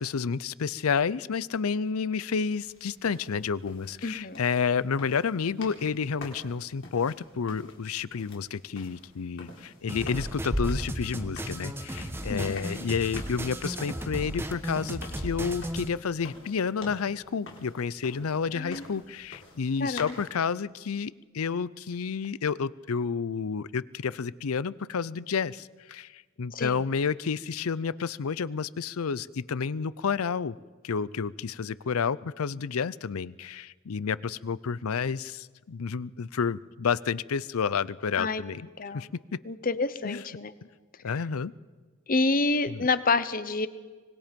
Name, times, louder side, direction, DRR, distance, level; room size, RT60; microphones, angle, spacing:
voice 1, 0.0-30.6 30.8-38.7 38.9-39.1 40.0-40.2 41.0-41.5 42.7-42.9, left 6 dB, 90° left, 20 dB, 0.5 m, -30 dB
sound 1, 2.6-20.3, left 2 dB, 60° left, 4.1 m, -48 dB
voice 2, 4.0-4.4 12.3-12.7 18.5-18.8 19.8-20.1 26.5-26.8 38.2-38.4 38.8-39.1 39.4-40.5 42.1-43.7, left 3 dB, 40° left, 13 dB, 0.9 m, -28 dB
sound 2, 9.9-15.9, right 1 dB, 10° right, 1.1 m, -36 dB
sound 3, 10.5-12.3, equal, 40° right, 2.3 m, -34 dB
25.0 x 20.0 x 5.2 m, 1.4 s
head